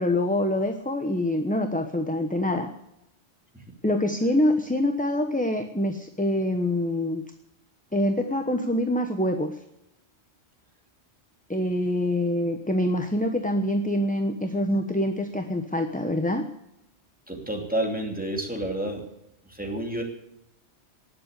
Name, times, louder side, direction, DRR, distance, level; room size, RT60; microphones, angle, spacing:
voice 1, 0.0-2.7 3.8-7.2 7.9-9.5 11.5-16.4, left 1 dB, 10° left, 5 dB, 1.0 m, -25 dB
voice 2, 17.3-19.1 19.4-20.0, right 1 dB, 10° right, 1 dB, 2.9 m, -30 dB
19.0 x 7.8 x 8.3 m, 0.83 s
omnidirectional pair, 1.1 m